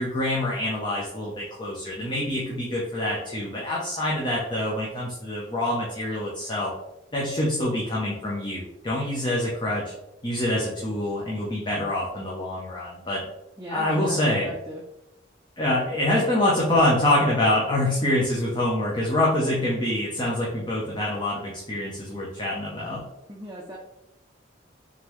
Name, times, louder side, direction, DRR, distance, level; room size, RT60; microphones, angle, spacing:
voice 1, 0.0-6.7 7.1-9.9 10.2-13.2 13.7-14.5 15.6-23.0, left 1 dB, 25° left, -5 dB, 0.7 m, -25 dB
voice 2, 13.6-14.2 14.4-14.8 23.3-23.8, equal, 15° right, -2 dB, 0.5 m, -38 dB
3.7 x 3.6 x 3.0 m, 0.90 s
head